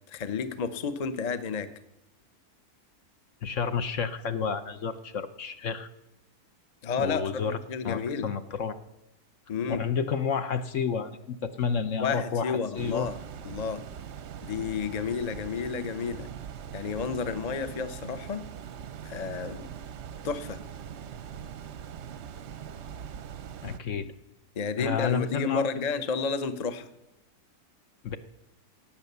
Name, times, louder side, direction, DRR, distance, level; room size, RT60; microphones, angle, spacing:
voice 1, 0.1-1.7 6.8-8.3 9.5-9.8 12.0-13.2 13.4-13.8 14.4-16.3 16.7-18.4 19.0-19.7 20.2-20.6 24.5-26.9, left 5 dB, 35° left, 12 dB, 0.7 m, -31 dB
voice 2, 3.4-5.9 7.0-7.6 7.8-8.8 9.7-13.1 23.6-24.1 24.8-25.7 28.0-28.2, left 6 dB, 60° left, 10 dB, 1.0 m, -30 dB
sound 1, 12.7-23.8, right 8 dB, 60° right, 0.8 m, -41 dB
17.0 x 8.9 x 6.8 m, 0.87 s
omnidirectional pair, 1.6 m